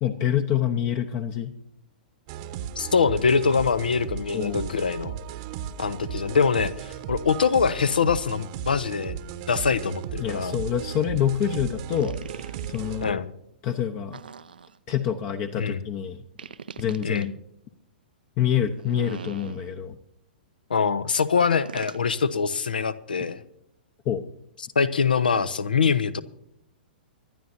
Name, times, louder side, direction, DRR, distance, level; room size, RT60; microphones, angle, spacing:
voice 1, 0.0-1.5 4.3-4.7 10.2-13.2 13.6-14.2 14.9-16.2 16.8-17.3 18.4-19.9 24.0-24.2, left 9 dB, 30° left, 6 dB, 0.9 m, -26 dB
sound 1, 2.3-13.1, right 9 dB, 40° right, 1.0 m, -36 dB
voice 2, 2.8-5.2 5.8-9.2 9.5-10.6 13.0-13.3 15.6-15.8 17.0-17.3 20.7-23.4 24.7-26.2, left 5 dB, 70° left, 15 dB, 0.9 m, -24 dB
sound 2, 12.0-13.0 14.1-15.0 16.4-17.3 18.7-20.0 21.7-22.1, right 6 dB, 70° right, 0.7 m, -41 dB
24.5 x 11.5 x 2.7 m, 0.78 s
figure-of-eight pair, 110°, 5 cm